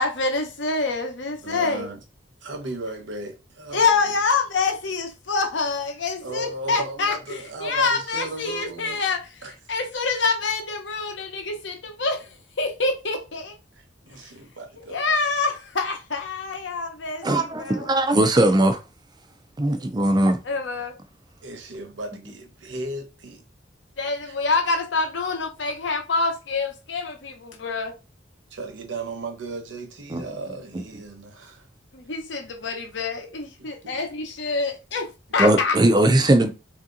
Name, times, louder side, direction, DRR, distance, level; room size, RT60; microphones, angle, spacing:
voice 1, 0.0-1.9 3.7-9.3 9.7-12.3 12.6-13.5 14.8-17.9 20.4-21.0 24.0-27.9 31.9-35.0 35.3-35.8, left 4 dB, 70° left, 0.8 m, -26 dB
voice 2, 1.4-2.0 2.4-3.9 6.2-9.0 9.4-9.5 13.7-15.0 19.7-19.8 21.4-23.4 24.3-24.4 28.5-31.7 33.6-34.0, right 2 dB, 75° right, 0.9 m, -36 dB
voice 3, 17.2-18.8 19.6-20.4 30.1-30.2 35.4-36.5, right 1 dB, 20° right, 0.4 m, -19 dB
3.2 x 2.8 x 3.7 m
head